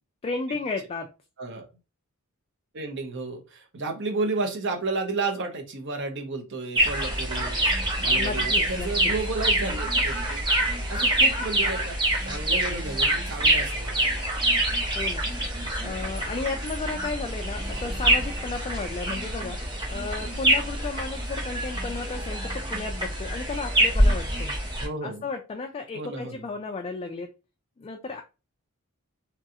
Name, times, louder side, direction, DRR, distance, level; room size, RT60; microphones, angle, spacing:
voice 1, 0.2-1.1 8.1-9.1 14.9-15.3 15.8-19.6 19.9-24.6 25.0-27.3 27.8-28.2, left 3 dB, 25° left, 4 dB, 0.3 m, -34 dB
voice 2, 2.7-7.6 8.0-10.4 10.9-12.0 12.2-14.1 24.8-25.3 25.9-26.4, right 3 dB, 55° right, 3 dB, 0.7 m, -32 dB
sound 1, 6.8-24.9, right 1 dB, 20° right, 0.7 m, -25 dB
3.0 x 2.5 x 2.7 m, 0.30 s
head